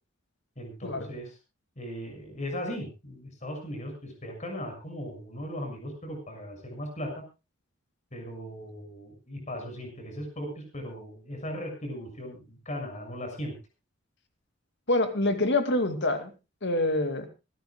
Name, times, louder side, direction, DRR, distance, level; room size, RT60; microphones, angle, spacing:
voice 1, 0.6-1.4 1.7-7.2 8.1-13.6, equal, 35° left, 3 dB, 6.7 m, -38 dB
voice 2, 14.9-16.3 16.6-17.3, left 2 dB, 55° left, 8 dB, 2.4 m, -26 dB
26.5 x 12.5 x 2.3 m, 0.27 s
head